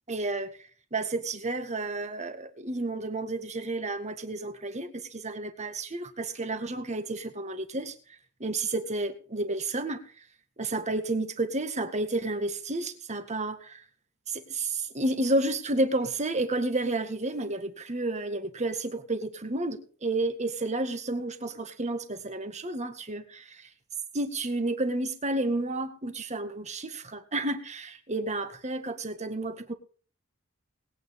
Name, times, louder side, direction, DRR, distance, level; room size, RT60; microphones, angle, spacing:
voice 1, 0.1-0.6 0.9-7.9 8.4-10.0 10.6-13.8 14.3-23.6 24.1-29.7, right 2 dB, 35° right, 1.8 m, -31 dB
20.5 x 9.0 x 3.6 m
head